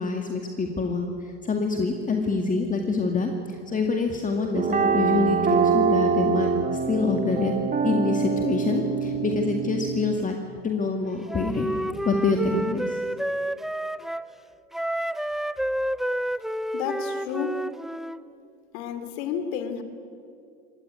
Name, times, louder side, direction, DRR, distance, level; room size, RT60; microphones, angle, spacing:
voice 1, 0.0-6.5 6.9-7.5 7.8-10.4 10.6-11.7 12.0-13.0, left 3 dB, 20° left, 3 dB, 2.1 m, -26 dB
sound 1, 4.5-10.2, right 5 dB, 25° right, 2.4 m, -24 dB
Wind instrument woodwind instrument, 11.3-14.3 14.7-18.2, right 1 dB, ahead, 0.5 m, -29 dB
voice 2, 16.7-17.6 18.7-19.8, left 8 dB, 65° left, 9 dB, 2.7 m, -31 dB
24.0 x 18.5 x 9.6 m, 2.5 s
hypercardioid pair, 90°, 35 cm